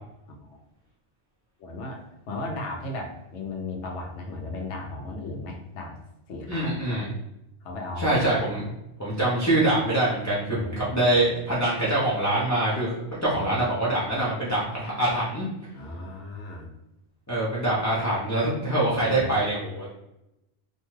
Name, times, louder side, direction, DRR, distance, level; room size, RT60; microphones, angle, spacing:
voice 1, 1.6-6.0 6.3-7.1 7.6-8.2 10.5-11.0 13.3-13.6 15.7-16.7 19.0-19.3, left 2 dB, 85° left, 1 dB, 0.9 m, -36 dB
voice 2, 6.5-7.1 8.0-8.7 9.0-15.5 17.3-20.0, right 1 dB, 20° left, -9 dB, 0.5 m, -24 dB
2.7 x 2.2 x 3.1 m, 0.88 s
omnidirectional pair, 1.2 m